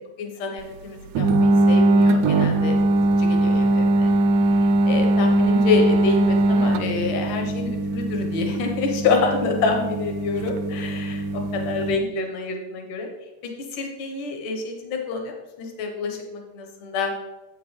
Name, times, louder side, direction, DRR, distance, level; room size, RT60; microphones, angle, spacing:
voice 1, 0.2-4.1 4.9-13.1 13.7-17.1, left 4 dB, 75° left, 3 dB, 2.7 m, -27 dB
sound 1, 1.2-12.0, right 2 dB, 80° right, 1.9 m, -20 dB
9.4 x 8.0 x 3.3 m, 1.1 s
omnidirectional pair, 3.7 m